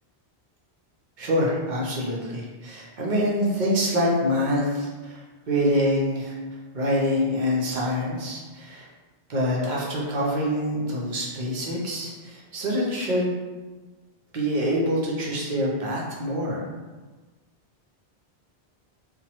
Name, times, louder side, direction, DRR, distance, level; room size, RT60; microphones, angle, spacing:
voice 1, 1.2-5.2 5.5-6.4 6.7-8.9 9.3-13.4 14.3-16.6, equal, 55° right, -4 dB, 0.7 m, -25 dB
2.9 x 2.2 x 2.8 m, 1.3 s
omnidirectional pair, 1.1 m